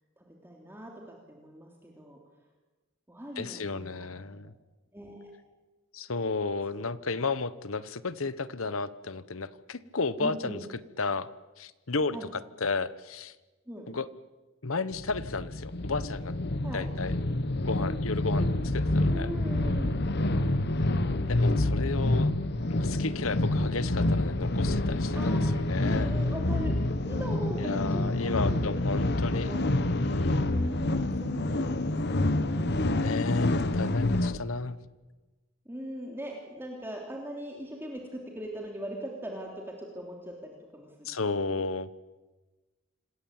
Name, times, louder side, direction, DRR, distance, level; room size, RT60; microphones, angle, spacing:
voice 1, 0.2-2.2 3.1-4.1 4.9-5.3 6.7-6.8 10.2-10.6 12.1-12.3 13.7-13.9 16.6-16.9 19.1-20.0 20.3-20.5 25.1-28.6 29.3-29.6 30.5-32.8 34.1-34.2 34.7-34.8 35.6-41.4, equal, 10° right, 0 dB, 3.3 m, -41 dB
voice 2, 3.4-4.5 5.9-10.6 11.0-11.3 11.6-13.3 13.9-14.1 14.6-16.3 16.7-17.1 17.6-19.3 21.3-22.3 22.7-26.1 27.6-30.5 33.0-34.8 41.0-41.9, left 3 dB, 75° left, 16 dB, 1.1 m, -33 dB
sound 1, 14.9-34.4, left 1 dB, 50° left, 1.1 m, -27 dB
26.5 x 19.0 x 8.8 m, 1.2 s
head